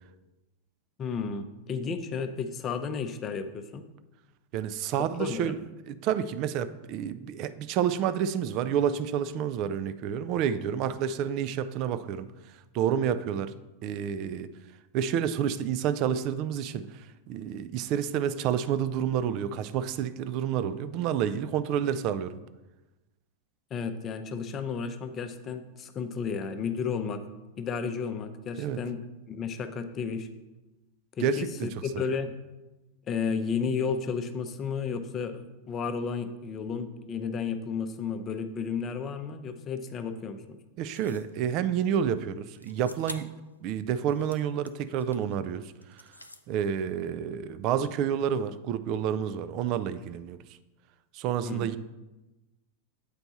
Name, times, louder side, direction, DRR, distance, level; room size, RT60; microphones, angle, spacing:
voice 1, 1.0-3.8 5.0-5.5 23.7-27.2 27.6-29.0 29.3-30.3 31.2-32.3 33.1-40.6 51.4-51.7, left 5 dB, 30° left, 8 dB, 0.6 m, -33 dB
voice 2, 4.5-5.6 5.9-12.3 12.7-13.5 13.8-14.5 14.9-16.9 17.3-22.4 28.6-28.8 31.2-31.7 40.8-43.3 43.6-46.0 46.5-50.4 51.1-51.8, right 8 dB, 40° right, 13 dB, 0.4 m, -29 dB
sound 1, 40.9-41.3 42.6-43.4 43.9-45.4 45.8-46.5, left 1 dB, 85° left, 0.4 m, -46 dB
8.2 x 4.4 x 4.0 m, 1.1 s
figure-of-eight pair, 90°, 0 cm